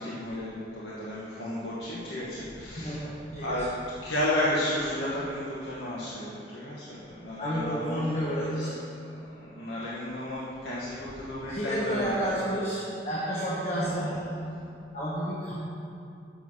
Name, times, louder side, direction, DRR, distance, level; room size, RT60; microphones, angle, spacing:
voice 1, 0.0-3.7 4.0-8.0 8.6-8.7 9.4-12.5, left 1 dB, 70° left, -7 dB, 1.1 m, -33 dB
voice 2, 2.8-3.7 7.4-8.8 11.5-14.3 14.9-15.5, equal, 35° left, -6 dB, 1.0 m, -30 dB
7.0 x 6.2 x 5.5 m, 2.5 s
head